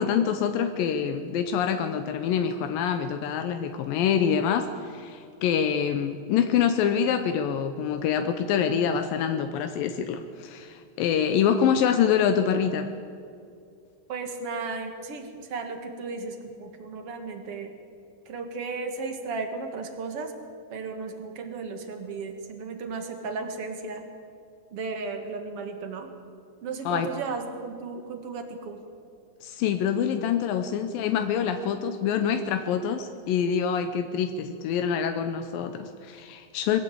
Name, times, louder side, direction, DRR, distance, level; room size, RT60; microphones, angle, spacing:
voice 1, 0.0-12.9 26.9-27.1 29.4-36.8, left 8 dB, 80° left, 7 dB, 2.1 m, -26 dB
voice 2, 14.1-17.7 18.3-20.3 20.7-24.1 24.7-26.1 26.6-28.8, right 4 dB, 50° right, 5 dB, 1.9 m, -35 dB
22.0 x 16.5 x 8.6 m, 2.4 s
omnidirectional pair, 5.0 m